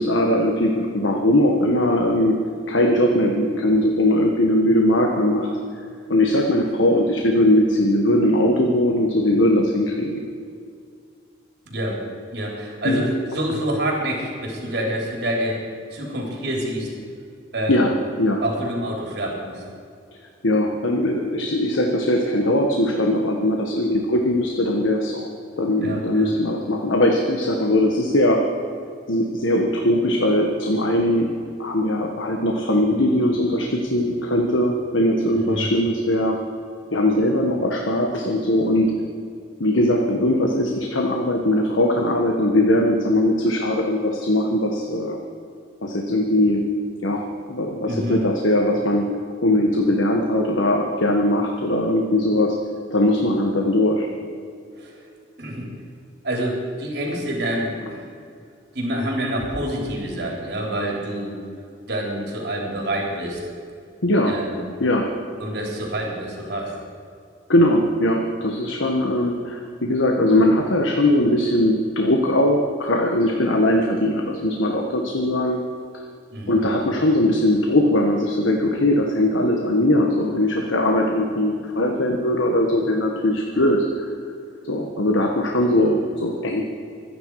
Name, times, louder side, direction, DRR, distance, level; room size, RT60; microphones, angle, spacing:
voice 1, 0.0-2.4 2.7-5.5 6.1-10.2 12.8-13.0 17.7-17.9 18.2-18.4 20.4-25.3 25.6-28.4 29.1-31.3 31.6-36.3 36.9-38.9 39.6-45.2 45.8-46.6 47.0-47.2 47.5-49.0 49.4-52.5 52.9-54.1 64.0-64.3 64.8-65.0 67.5-75.6 76.5-84.0 84.6-86.6, left 1 dB, 80° left, 1 dB, 1.5 m, -20 dB
voice 2, 11.7-12.0 12.3-15.6 15.9-16.9 17.5-17.9 18.4-19.6 25.8-26.3 35.4-35.7 47.9-48.2 54.8-55.0 55.4-55.7 56.2-58.0 58.7-61.4 61.9-63.4 64.2-64.6 65.4-66.7 76.3-76.7, right 1 dB, 55° right, -1 dB, 3.6 m, -27 dB
25.0 x 10.0 x 4.8 m, 2.4 s
head